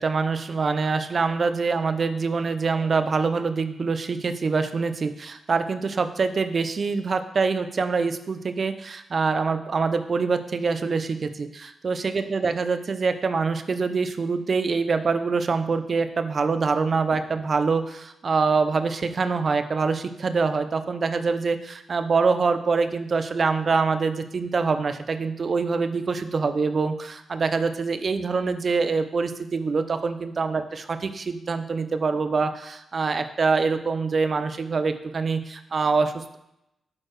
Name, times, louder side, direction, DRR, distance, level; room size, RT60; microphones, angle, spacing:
voice 1, 0.0-36.4, right 4 dB, 50° right, 9 dB, 0.6 m, -25 dB
8.5 x 4.4 x 3.2 m, 0.85 s
supercardioid pair, 45°, 0 cm